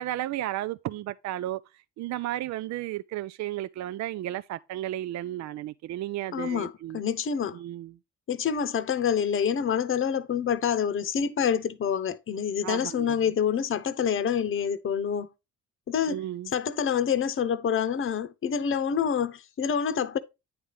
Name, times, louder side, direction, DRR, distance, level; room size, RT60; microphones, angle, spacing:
voice 1, 0.0-7.0 7.5-8.0 12.6-13.3 16.1-16.5, right 14 dB, 65° right, 0.4 m, -34 dB
voice 2, 6.3-7.6 8.3-15.3 15.9-16.2 16.5-20.2, left 7 dB, 45° left, 0.8 m, -27 dB
9.5 x 3.4 x 5.5 m
cardioid pair, 90°, 30 cm